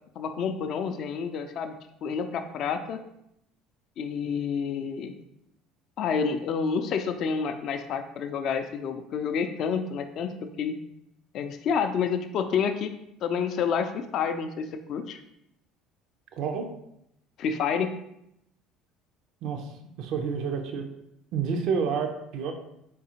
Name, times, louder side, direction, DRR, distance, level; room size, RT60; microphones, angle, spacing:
voice 1, 0.2-3.0 4.0-5.1 6.0-10.7 11.3-12.9 13.2-15.2 17.4-17.9, left 6 dB, 60° left, 7 dB, 0.3 m, -29 dB
voice 2, 16.3-16.7 19.4-19.7 20.0-20.9 21.3-22.5, right 6 dB, 65° right, 5 dB, 0.5 m, -29 dB
4.1 x 3.6 x 2.8 m, 0.79 s
supercardioid pair, 80°, 0 cm